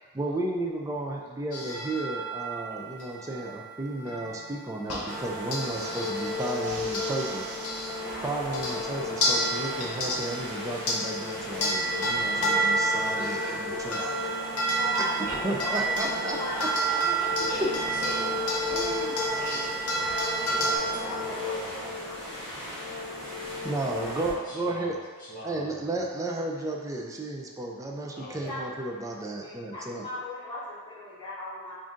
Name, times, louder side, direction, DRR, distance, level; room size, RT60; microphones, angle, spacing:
voice 1, 0.1-7.4 8.2-14.0 15.0-15.1 15.4-17.3 17.6-17.7 23.6-25.0 25.4-30.1, right 2 dB, 15° right, 0 dB, 0.3 m, -33 dB
sound 1, 1.5-8.1 8.5-8.8 9.2-20.8, right 2 dB, 75° left, 0.7 m, -30 dB
sound 2, 5.1-24.3, left 2 dB, 5° left, 0.9 m, -35 dB
voice 2, 5.8-8.2 13.2-13.8 15.2-15.4 15.7-15.9 16.1-17.3 18.6-19.2, right 3 dB, 80° right, 0 dB, 0.6 m, -40 dB
voice 3, 13.8-16.8 17.1-17.4 18.2-18.3 19.1-19.5 21.0-22.4 28.4-28.7 29.1-31.7, left 1 dB, 20° left, -9 dB, 1.1 m, -39 dB
voice 4, 17.5-18.4 19.3-22.1 24.2-26.0 28.1-28.6, equal, 40° left, -8 dB, 1.3 m, -42 dB
3.6 x 2.5 x 3.7 m, 1.5 s
head